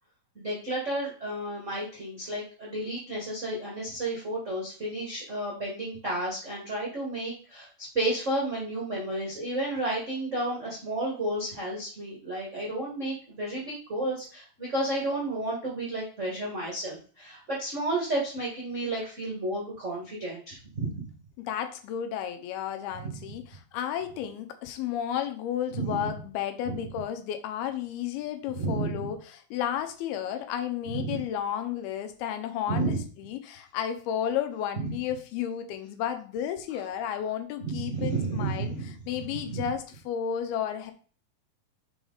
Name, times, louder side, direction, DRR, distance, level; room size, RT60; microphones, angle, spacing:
voice 1, 0.3-21.0 25.7-25.9 26.6-26.9 28.5-29.1 30.9-31.2 32.7-33.0 37.6-38.9 39.5-39.6, right 2 dB, 55° right, -4 dB, 0.8 m, -32 dB
voice 2, 21.4-38.7 39.1-40.9, left 9 dB, 80° left, 8 dB, 2.6 m, -32 dB
5.9 x 5.0 x 4.0 m, 0.40 s
omnidirectional pair, 4.5 m